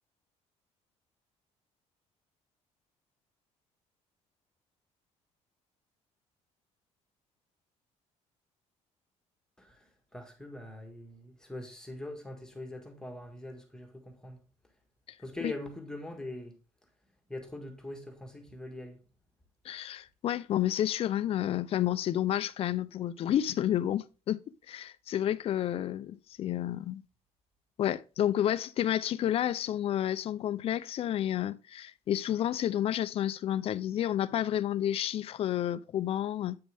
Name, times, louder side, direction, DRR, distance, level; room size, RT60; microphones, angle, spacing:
voice 1, 9.6-14.4 15.2-16.6 17.3-19.0, left 1 dB, 5° left, 1.6 m, -43 dB
voice 2, 19.6-27.0 27.8-36.6, left 11 dB, 50° left, 0.5 m, -30 dB
8.6 x 6.2 x 3.4 m
cardioid pair, 130°, 12 cm